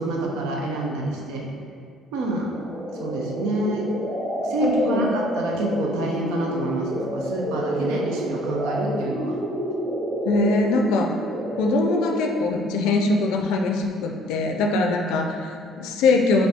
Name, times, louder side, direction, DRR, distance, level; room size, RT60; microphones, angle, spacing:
voice 1, 0.0-1.5 2.1-2.5 3.0-3.9 4.4-9.4 15.6-15.7, right 2 dB, 85° right, -1 dB, 0.6 m, -27 dB
sound 1, 2.5-12.5, right 1 dB, 65° right, 1.4 m, -29 dB
voice 2, 4.6-5.1 10.2-11.1 11.6-16.5, left 3 dB, 85° left, 2 dB, 0.3 m, -22 dB
4.2 x 2.7 x 3.4 m, 2.2 s
cardioid pair, 90°, 0 cm